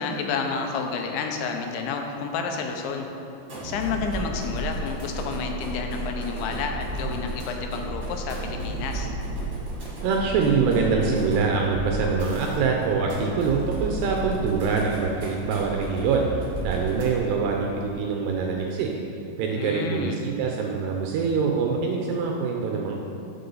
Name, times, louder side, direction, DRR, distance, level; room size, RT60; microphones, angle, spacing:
voice 1, 0.0-3.1 3.6-9.1 19.5-20.2, left 5 dB, 85° left, 3 dB, 3.0 m, -30 dB
sound 1, 3.4-17.4, right 1 dB, 35° right, 2.2 m, -33 dB
voice 2, 10.0-18.9 19.4-22.9, right 5 dB, 85° right, 1 dB, 2.5 m, -24 dB
7.8 x 6.8 x 5.4 m, 2.7 s
omnidirectional pair, 5.3 m